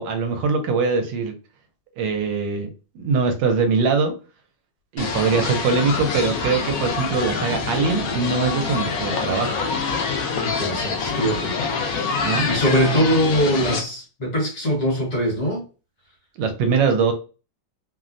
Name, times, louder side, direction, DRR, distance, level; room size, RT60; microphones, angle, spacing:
voice 1, 0.0-1.3 2.0-2.7 2.9-4.1 4.9-9.6 12.2-12.5 16.4-17.1, right 4 dB, 80° right, 1.2 m, -22 dB
sound 1, 5.0-13.8, left 5 dB, 75° left, 0.8 m, -26 dB
voice 2, 10.4-11.6 12.4-15.6, equal, 50° left, 1.4 m, -22 dB
3.1 x 2.1 x 2.5 m
omnidirectional pair, 2.0 m